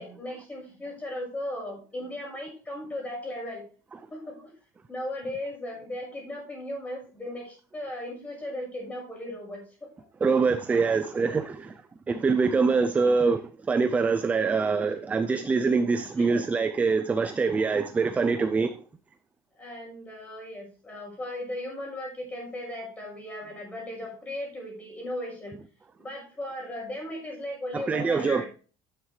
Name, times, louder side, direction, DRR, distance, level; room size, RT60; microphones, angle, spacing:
voice 1, 0.0-3.6 4.1-4.5 4.9-10.1 10.9-11.0 14.9-15.0 16.2-16.4 18.4-18.5 19.5-25.6 26.0-28.4, left 1 dB, 10° left, 6.0 m, -37 dB
voice 2, 10.2-11.8 12.1-18.8 27.7-28.4, right 4 dB, 10° right, 0.5 m, -24 dB
11.0 x 9.3 x 3.3 m
cardioid pair, 165°, 12 cm